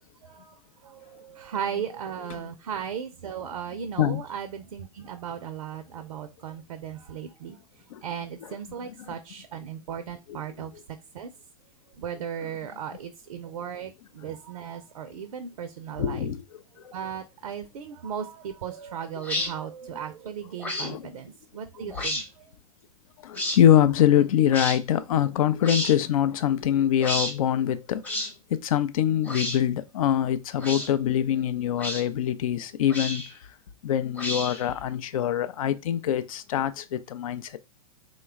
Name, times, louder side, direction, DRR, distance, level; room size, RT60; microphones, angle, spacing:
voice 1, 0.2-7.6 8.0-10.7 11.1-11.3 12.0-16.3 16.9-22.5, right 8 dB, 70° right, 0.5 m, -36 dB
voice 2, 16.0-16.4 20.8-21.1 23.2-28.2 28.5-33.2 33.8-37.6, left 10 dB, 65° left, 0.5 m, -24 dB
sound 1, 19.2-19.5 20.6-20.9 21.9-22.2 23.3-23.6 24.5-24.8 25.6-26.0 27.0-27.3 28.0-28.3 29.2-29.6 30.6-30.9 31.8-32.0 32.9-33.3 34.2-34.7, left 1 dB, 10° left, 0.8 m, -30 dB
3.1 x 2.2 x 3.5 m
hypercardioid pair, 105°, 19 cm